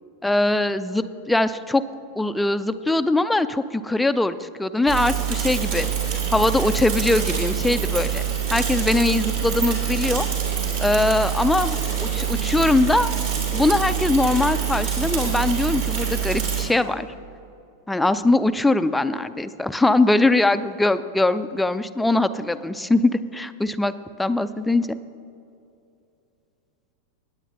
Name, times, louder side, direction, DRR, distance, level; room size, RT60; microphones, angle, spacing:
voice 1, 0.2-1.8 2.2-5.9 6.3-8.2 8.5-10.3 10.8-13.1 13.5-17.1 17.9-23.9 24.2-25.0, left 2 dB, 5° left, 10 dB, 0.3 m, -21 dB
Bicycle / Mechanisms, 4.9-16.6, right 8 dB, 55° right, 2.8 m, -25 dB
18.0 x 8.6 x 2.8 m, 2.6 s
figure-of-eight pair, 90°, 0 cm